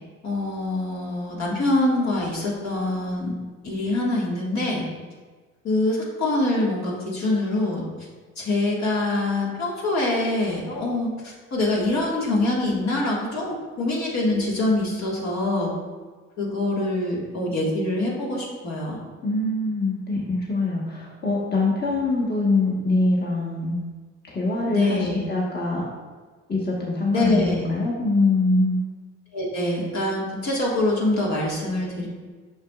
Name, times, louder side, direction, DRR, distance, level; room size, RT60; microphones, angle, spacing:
voice 1, 0.2-3.3 3.6-4.8 5.6-7.8 8.4-15.7 16.4-19.0 24.7-25.3 27.1-27.7 29.3-32.1, left 2 dB, 65° left, -4 dB, 1.8 m, -24 dB
voice 2, 19.2-23.8 24.3-25.8 26.5-28.8, left 2 dB, 35° left, -4 dB, 1.3 m, -23 dB
7.2 x 6.0 x 2.4 m, 1.4 s
cardioid pair, 90°, 30 cm